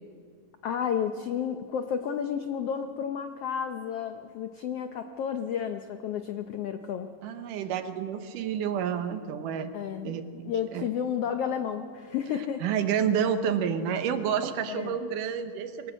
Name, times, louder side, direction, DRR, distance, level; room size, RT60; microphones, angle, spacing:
voice 1, 0.6-7.1 9.7-12.6 14.7-15.0, left 8 dB, 85° left, 7 dB, 1.3 m, -32 dB
voice 2, 7.2-9.7 10.0-10.9 12.6-15.9, right 8 dB, 80° right, 8 dB, 2.6 m, -29 dB
22.5 x 18.0 x 7.9 m, 2.1 s
omnidirectional pair, 3.8 m